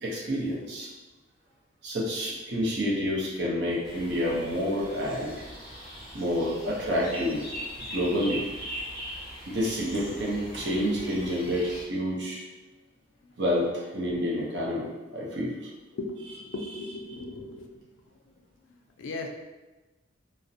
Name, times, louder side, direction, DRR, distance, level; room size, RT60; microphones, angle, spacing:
voice 1, 0.0-0.9 1.8-5.4 6.1-7.4 7.9-8.4 9.5-12.4 13.4-15.5, equal, 55° right, -4 dB, 0.6 m, -28 dB
sound 1, 3.8-11.8, equal, 5° right, 0.6 m, -41 dB
voice 2, 15.9-17.7 19.0-19.3, left 2 dB, 75° left, 3 dB, 0.3 m, -37 dB
2.4 x 2.0 x 2.6 m, 1.2 s
head